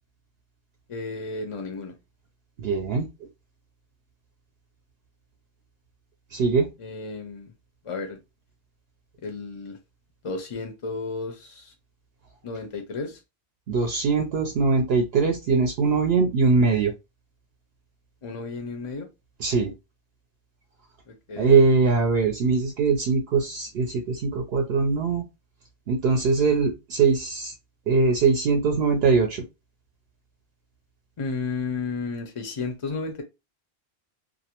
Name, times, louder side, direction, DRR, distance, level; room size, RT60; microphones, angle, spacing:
voice 1, 0.9-1.9 6.8-7.5 7.8-8.2 9.2-9.8 10.2-11.7 12.4-13.2 18.2-19.1 21.1-21.6 31.2-33.2, left 4 dB, 45° left, 5 dB, 0.4 m, -33 dB
voice 2, 2.6-3.1 6.3-6.7 13.7-16.9 19.4-19.7 21.4-25.2 25.9-27.5 27.9-29.4, right 4 dB, 70° right, 3 dB, 0.8 m, -21 dB
2.4 x 2.1 x 2.8 m, 0.24 s
omnidirectional pair, 1.1 m